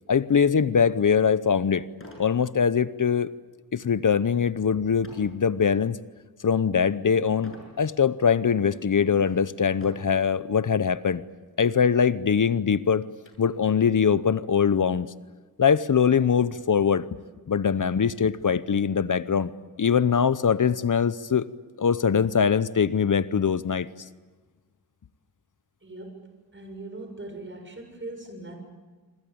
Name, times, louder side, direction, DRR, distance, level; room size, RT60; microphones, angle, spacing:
voice 1, 0.1-1.9 2.2-3.3 3.7-6.0 6.4-11.2 11.6-13.1 13.4-15.1 15.6-17.1 17.5-19.5 19.8-21.5 21.8-23.9, left 7 dB, 55° left, 16 dB, 0.8 m, -22 dB
sound 1, 1.9-2.4 2.8-3.1 5.0-5.4 6.0-6.4 7.4-7.8 8.5-8.6 9.7-10.2 11.2-11.4 11.7-11.8 12.2-13.4, left 1 dB, 35° left, 7.5 m, -46 dB
voice 2, 25.8-28.6, right 2 dB, 30° right, 4 dB, 6.8 m, -40 dB
26.5 x 25.0 x 8.7 m, 1.3 s
wide cardioid pair, 85°, 38 cm